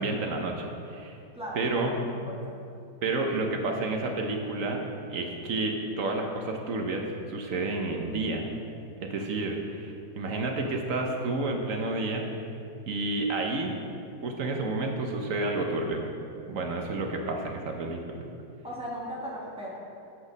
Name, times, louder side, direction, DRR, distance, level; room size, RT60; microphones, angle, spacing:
voice 1, 0.0-1.2 1.5-2.0 3.0-4.8 5.1-8.5 9.0-12.3 12.9-13.7 14.2-16.0 16.5-18.3, right 2 dB, 55° right, 2 dB, 1.0 m, -30 dB
voice 2, 1.3-2.6 18.6-19.8, equal, 5° right, -5 dB, 1.2 m, -37 dB
8.0 x 6.1 x 5.3 m, 2.5 s
omnidirectional pair, 2.1 m